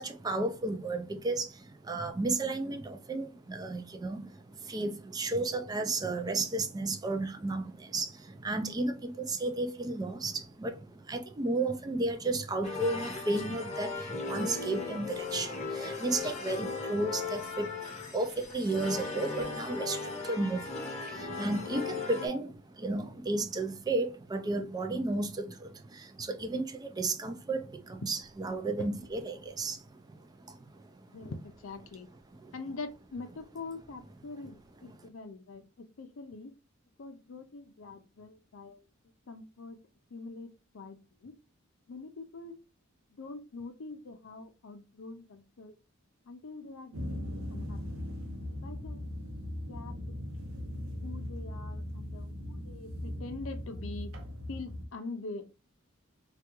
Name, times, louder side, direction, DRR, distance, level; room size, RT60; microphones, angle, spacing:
voice 1, 0.0-31.3 32.0-32.5 34.4-34.5 34.8-35.1, right 2 dB, 20° right, 0.3 m, -33 dB
sound 1, 12.6-22.3, left 4 dB, 35° left, 0.9 m, -37 dB
voice 2, 31.1-32.1 32.5-36.5 37.0-38.8 39.3-39.8 40.1-41.0 41.2-41.3 41.9-42.5 43.2-45.7 46.3-47.8 48.6-49.1 49.7-49.9 51.0-54.1 54.5-55.6, left 3 dB, 75° left, 0.5 m, -44 dB
sound 2, 46.9-54.8, left 1 dB, 90° right, 0.6 m, -39 dB
3.4 x 2.3 x 2.9 m
head